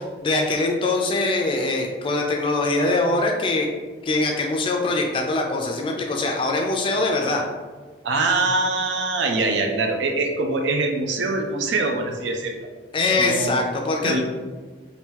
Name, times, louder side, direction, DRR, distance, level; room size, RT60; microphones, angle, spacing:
voice 1, 0.0-3.7 4.0-7.4 12.9-14.2, left 2 dB, 30° left, 1 dB, 0.3 m, -23 dB
voice 2, 8.0-12.7 13.2-13.6 14.0-14.2, right 3 dB, 75° right, 3 dB, 0.5 m, -23 dB
2.8 x 2.6 x 3.6 m, 1.4 s
head